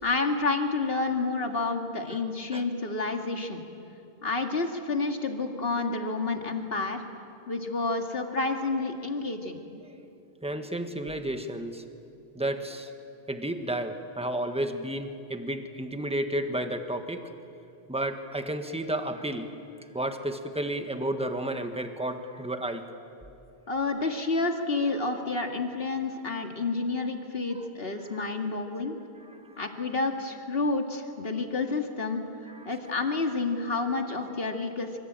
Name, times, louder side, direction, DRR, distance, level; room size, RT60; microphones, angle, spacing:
voice 1, 0.0-3.7 4.2-7.0 7.5-9.6 23.7-29.0 29.6-32.2 32.7-35.0, left 3 dB, 60° left, 4 dB, 2.4 m, -29 dB
voice 2, 10.4-11.8 12.3-12.9 13.3-17.2 17.9-19.6 19.9-22.8 29.3-29.4 32.5-32.7, right 1 dB, 5° right, 7 dB, 1.5 m, -32 dB
27.0 x 24.5 x 8.9 m, 2.7 s
omnidirectional pair, 1.1 m